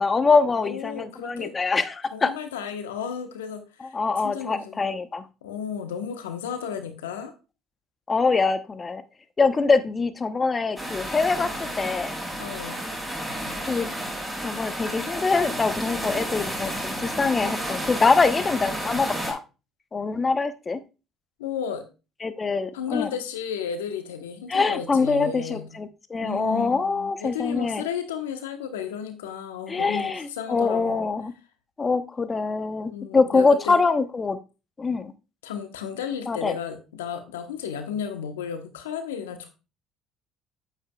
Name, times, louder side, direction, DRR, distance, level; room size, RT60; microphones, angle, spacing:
voice 1, 0.0-2.3 3.8-5.2 8.1-9.0 9.4-12.2 13.6-13.9 14.4-19.4 19.9-20.8 22.2-23.1 24.5-27.8 29.7-31.3 31.8-34.4 34.8-35.1 36.3-36.5, left 4 dB, 30° left, 12 dB, 0.9 m, -24 dB
voice 2, 0.6-1.5 2.1-4.0 4.2-4.9 5.4-7.3 12.4-12.8 21.4-21.8 22.7-25.6 26.2-31.0 32.8-33.8 35.4-39.5, left 8 dB, 85° left, 7 dB, 1.1 m, -33 dB
sound 1, 10.8-19.3, equal, 5° right, 4.9 m, -31 dB
8.7 x 8.0 x 2.3 m, 0.30 s
hypercardioid pair, 60°, 0 cm